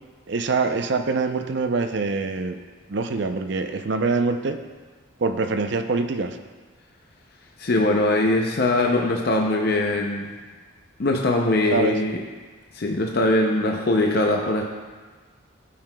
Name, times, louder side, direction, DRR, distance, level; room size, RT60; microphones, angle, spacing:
voice 1, 0.3-2.6 2.9-4.6 5.2-6.4 11.7-12.0, right 4 dB, 55° right, 7 dB, 0.5 m, -24 dB
voice 2, 7.6-10.3 11.0-12.2 12.7-14.6, left 2 dB, 50° left, 1 dB, 0.5 m, -21 dB
13.5 x 5.7 x 2.2 m, 1.4 s
head